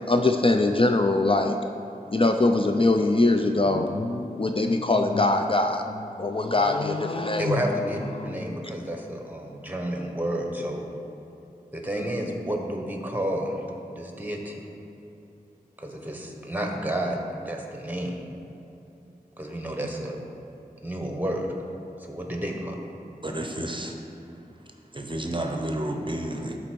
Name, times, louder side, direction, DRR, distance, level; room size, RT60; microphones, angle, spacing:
voice 1, 0.1-1.6 2.1-7.6 8.2-8.7, left 2 dB, 35° left, 4 dB, 0.4 m, -23 dB
voice 2, 7.4-10.8 11.7-13.6 13.9-14.6 15.8-17.2 17.4-18.2 19.4-20.2 20.8-21.5 22.0-22.7, right 1 dB, 10° right, 1 dB, 1.2 m, -30 dB
voice 3, 23.2-24.0 24.6-26.6, right 1 dB, 30° right, 2 dB, 0.7 m, -31 dB
12.0 x 4.3 x 4.6 m, 2.9 s
wide cardioid pair, 50°, 15 cm